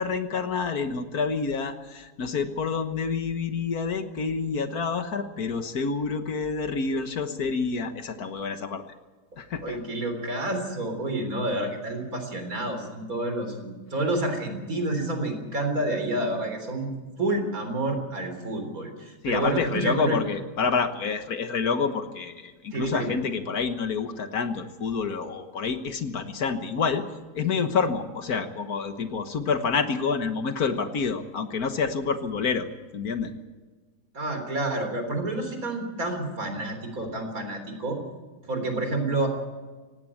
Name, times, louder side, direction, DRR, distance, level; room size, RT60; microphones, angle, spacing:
voice 1, 0.0-8.8 9.4-9.8 19.2-27.0 27.3-32.7 32.9-33.3, left 5 dB, 65° left, 8 dB, 1.7 m, -28 dB
voice 2, 9.6-16.9 17.2-20.2 22.7-23.2 34.1-38.0 38.5-39.3, right 2 dB, 55° right, 5 dB, 4.2 m, -29 dB
18.0 x 17.0 x 8.6 m, 1.3 s
omnidirectional pair, 1.8 m